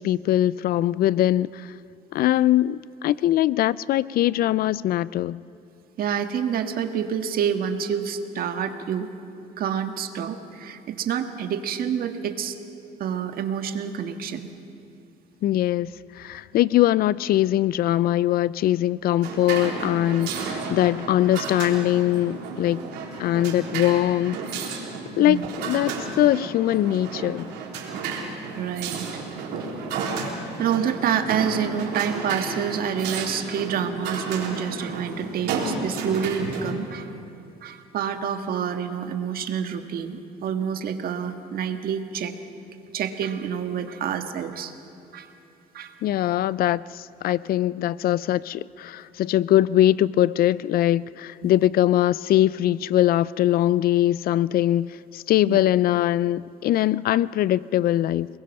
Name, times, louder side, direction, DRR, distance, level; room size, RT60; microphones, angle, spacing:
voice 1, 0.0-1.7 2.1-5.4 15.4-22.9 23.2-24.4 25.2-27.5 46.0-58.3, left 13 dB, 60° left, 0.4 m, -22 dB
voice 2, 6.0-9.1 9.6-12.6 13.0-14.5 25.2-25.5 28.5-29.1 30.6-37.1 37.6-42.3 42.9-44.7 45.1-45.3 45.7-45.9 51.4-51.5 55.5-55.6, right 8 dB, 60° right, 1.6 m, -28 dB
sound 1, 19.2-36.7, right 4 dB, 85° right, 3.7 m, -32 dB
29.0 x 21.0 x 5.5 m
cardioid pair, 110°, 17 cm